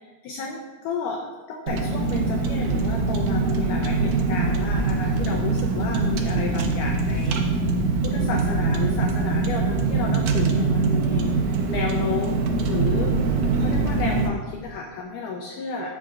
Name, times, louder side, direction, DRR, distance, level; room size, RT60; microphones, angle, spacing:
voice 1, 0.0-7.8 8.0-12.4 12.7-13.2 13.6-15.9, left 4 dB, 75° left, 1 dB, 2.0 m, -32 dB
Car, 1.7-14.3, right 3 dB, 75° right, 2.1 m, -23 dB
15.5 x 5.9 x 2.4 m, 1.3 s
omnidirectional pair, 4.3 m